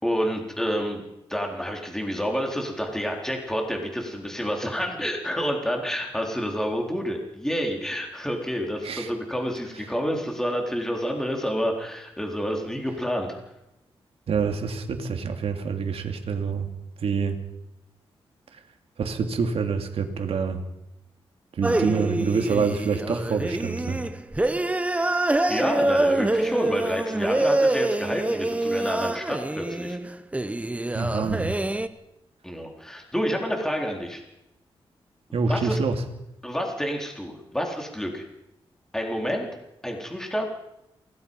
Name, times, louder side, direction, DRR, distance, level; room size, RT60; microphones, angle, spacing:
voice 1, 0.0-1.0 1.3-13.4 25.5-30.0 32.4-34.2 35.4-35.8 36.4-38.3 38.9-39.5 39.8-40.5, equal, 5° left, 1 dB, 4.1 m, -28 dB
voice 2, 14.3-16.7 17.0-17.4 18.5-18.6 19.0-20.6 21.5-24.0 30.9-31.6 35.3-36.0, right 5 dB, 75° right, 5 dB, 2.9 m, -26 dB
sound 1, 21.6-31.9, right 2 dB, 15° right, 1.1 m, -25 dB
27.5 x 19.0 x 5.6 m, 0.87 s
wide cardioid pair, 95°, 10 cm